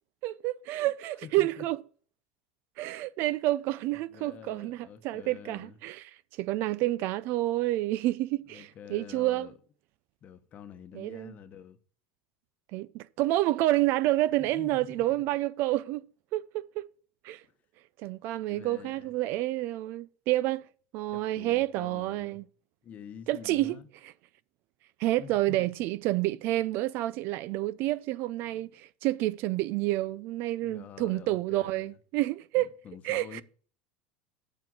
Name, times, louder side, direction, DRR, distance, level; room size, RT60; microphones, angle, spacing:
voice 1, 0.2-1.8 2.8-6.1 6.4-9.5 10.9-11.3 12.7-16.0 16.3-16.9 17.2-17.4 18.0-20.6 20.9-22.4 23.3-23.8 25.0-32.7 33.0-33.4, right 16 dB, 55° right, 0.4 m, -29 dB
voice 2, 1.2-1.7 4.1-5.8 8.5-9.5 10.2-11.8 14.4-15.2 17.4-17.5 18.5-19.1 21.1-22.4 22.8-23.9 25.2-25.7 28.4-28.7 30.5-32.0 32.6-33.4, left 8 dB, 35° left, 1.0 m, -47 dB
7.5 x 7.2 x 6.0 m
supercardioid pair, 140°, 5 cm